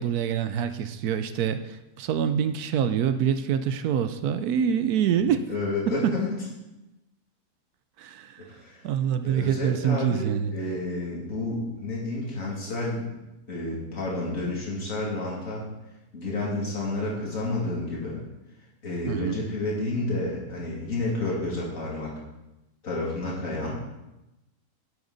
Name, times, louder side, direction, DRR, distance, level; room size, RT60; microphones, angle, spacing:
voice 1, 0.0-5.4 5.9-6.1 8.0-8.4 8.8-10.5 19.1-19.4, right 8 dB, 75° right, 10 dB, 1.1 m, -26 dB
voice 2, 5.5-6.3 8.4-8.8 9.2-13.1 13.5-15.7 16.1-18.2 18.8-22.1 22.8-23.8, left 2 dB, 55° left, -4 dB, 2.9 m, -30 dB
10.0 x 8.0 x 4.0 m, 0.98 s
omnidirectional pair, 1.7 m